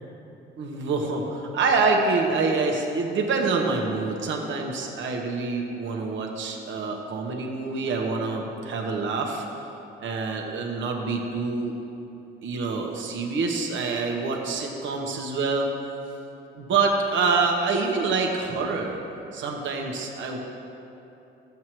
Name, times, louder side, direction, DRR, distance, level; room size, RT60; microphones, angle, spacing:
voice 1, 0.6-9.4 10.0-11.7 12.4-15.7 16.5-19.0 19.3-20.4, right 4 dB, 70° right, 1 dB, 1.3 m, -26 dB
12.5 x 8.2 x 3.1 m, 2.9 s
cardioid pair, 90°, 20 cm